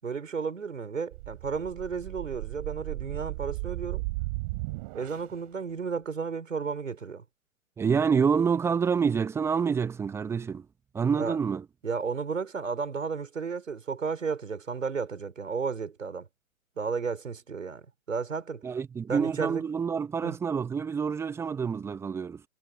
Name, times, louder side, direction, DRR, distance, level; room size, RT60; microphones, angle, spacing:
voice 1, 0.0-4.0 4.9-7.2 11.1-11.4 11.8-16.3 16.8-18.6 19.1-19.6 20.2-20.4, right 5 dB, 60° right, 5.2 m, -33 dB
sound 1, 1.1-5.4, right 24 dB, 25° right, 5.1 m, -36 dB
voice 2, 7.8-10.7 10.9-11.6 18.6-22.4, right 6 dB, 5° right, 1.7 m, -27 dB
figure-of-eight pair, 135°, 43 cm